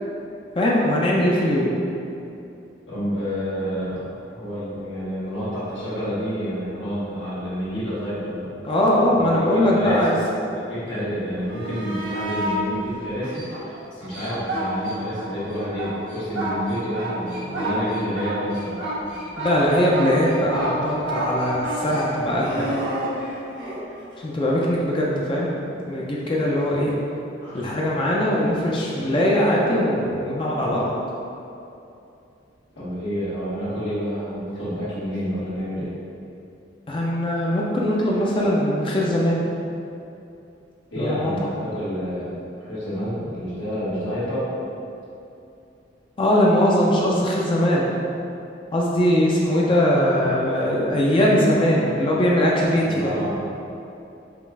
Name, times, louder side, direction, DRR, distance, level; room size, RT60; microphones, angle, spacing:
voice 1, 0.6-1.7 8.6-10.2 19.4-22.8 24.2-25.5 25.8-26.9 27.5-30.9 36.9-39.4 40.9-41.5 46.2-47.9 48.7-53.1, equal, 30° left, -4 dB, 0.4 m, -21 dB
voice 2, 2.9-8.5 9.2-10.0 10.5-18.8 27.4-27.7 32.7-35.9 40.9-44.5 52.7-53.4, equal, 90° left, -11 dB, 1.5 m, -29 dB
sound 1, 11.4-12.6 13.2-15.3 15.6-23.8 26.6-26.7, right 1 dB, 85° right, 1.1 m, -30 dB
5.0 x 2.4 x 3.4 m, 2.7 s
head